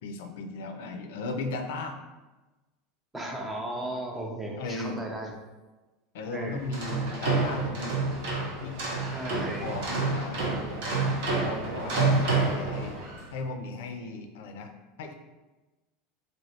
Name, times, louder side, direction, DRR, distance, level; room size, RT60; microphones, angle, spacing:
voice 1, 0.0-2.0 4.6-5.0 6.1-7.9 8.6-8.8 9.6-10.4 11.4-13.0 13.3-14.7 15.0-15.1, left 3 dB, 80° left, 5 dB, 0.4 m, -36 dB
voice 2, 3.1-5.3 6.3-6.7 9.1-9.7, right 1 dB, 10° right, 1 dB, 0.4 m, -35 dB
sound 1, 6.6-13.3, right 3 dB, 70° right, 0.9 m, -28 dB
3.1 x 2.7 x 2.8 m, 1.1 s
supercardioid pair, 165°, 0 cm